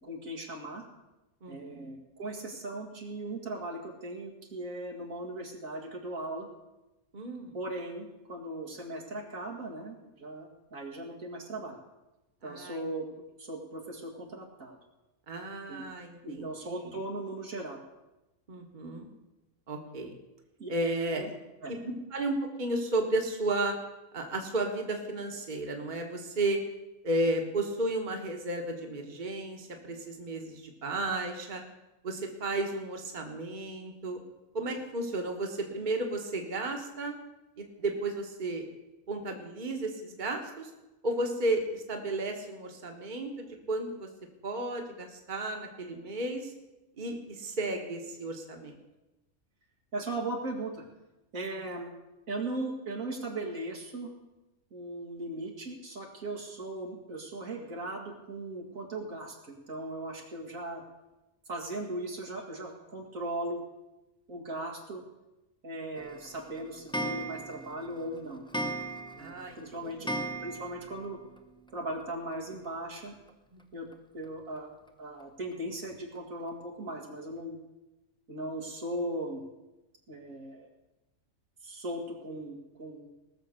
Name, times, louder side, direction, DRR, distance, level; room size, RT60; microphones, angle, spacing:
voice 1, 0.0-0.9 1.5-6.5 7.5-11.8 12.4-13.1 13.4-14.8 15.7-15.8 16.2-17.8 20.6-20.7 21.2-21.3 21.6-21.7 49.9-50.8 51.3-51.9 52.3-54.1 54.7-60.8 61.5-63.6 64.3-65.0 65.6-68.4 69.2-70.1 70.4-71.2 71.7-73.2 73.7-73.9 74.1-74.7 75.0-77.6 78.3-79.4 80.1-80.7 81.6-83.1, right 1 dB, 85° right, -1 dB, 2.5 m, -38 dB
voice 2, 1.4-1.9 7.1-7.5 12.4-12.8 15.3-16.9 18.5-19.1 19.7-20.1 20.7-21.3 21.7-23.7 24.1-26.6 27.0-31.6 32.0-34.2 34.5-37.1 37.6-38.7 39.1-40.7 41.0-44.1 44.4-46.5 47.0-48.7 69.2-70.1 73.5-73.6, right 2 dB, 35° right, 3 dB, 1.5 m, -33 dB
Clock, 66.0-71.0 71.4-71.5 71.7-71.8 72.0-72.1 73.3-73.4 73.9-74.0 74.6-74.7 75.2-75.3 75.8-75.9 76.5-76.6, right 1 dB, 5° left, 0.7 m, -37 dB
19.0 x 6.8 x 6.7 m, 1.0 s
omnidirectional pair, 1.4 m